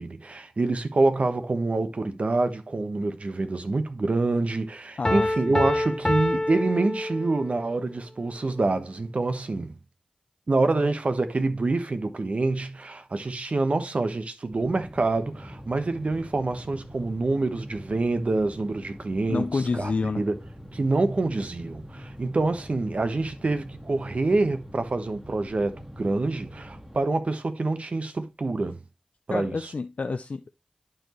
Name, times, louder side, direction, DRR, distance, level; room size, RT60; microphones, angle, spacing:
voice 1, 0.0-9.8 10.5-19.9 20.2-20.4 20.7-28.8 29.3-29.7, right 3 dB, 65° right, 1.1 m, -26 dB
voice 2, 5.0-5.6 19.3-20.2 29.3-30.5, left 4 dB, 75° left, 0.5 m, -29 dB
Piano, 5.1-7.6, left 1 dB, 25° left, 0.6 m, -26 dB
sound 1, 14.5-27.0, equal, 20° right, 2.1 m, -44 dB
11.0 x 4.7 x 3.0 m
wide cardioid pair, 55°, 2 cm